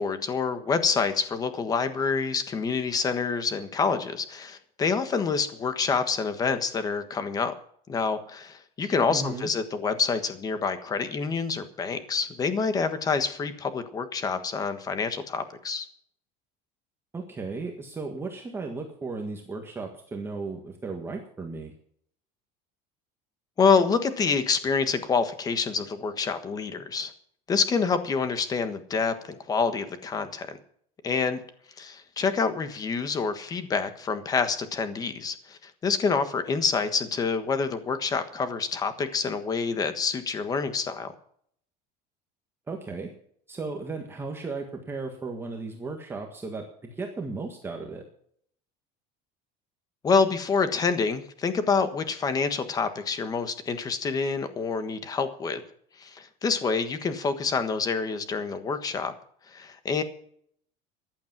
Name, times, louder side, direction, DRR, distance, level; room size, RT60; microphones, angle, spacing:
voice 1, 0.0-7.5 7.9-15.8 23.6-27.1 27.5-30.6 31.0-31.4 31.8-41.1 50.0-55.6 56.0-59.1 59.5-60.0, left 5 dB, 20° left, 10 dB, 1.4 m, -27 dB
voice 2, 9.1-9.5 17.1-21.7 42.7-43.1 43.5-48.0, right 3 dB, 10° right, 2 dB, 1.6 m, -35 dB
15.0 x 10.5 x 6.0 m, 0.63 s
cardioid pair, 180°, 19 cm